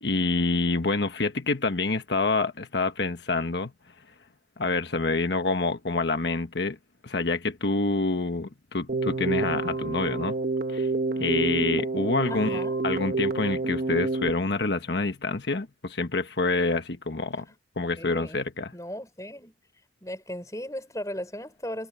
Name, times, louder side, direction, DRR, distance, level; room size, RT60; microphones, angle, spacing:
voice 1, 0.0-3.7 4.6-6.8 7.0-10.4 10.7-10.9 11.2-17.5 17.8-18.7, left 3 dB, 85° left, 1.3 m, -27 dB
Keyboard (musical), 8.9-14.3, right 3 dB, 60° right, 1.4 m, -28 dB
voice 2, 12.3-12.8 18.0-18.4 18.7-19.6 20.0-21.9, equal, 20° left, 6.3 m, -36 dB
head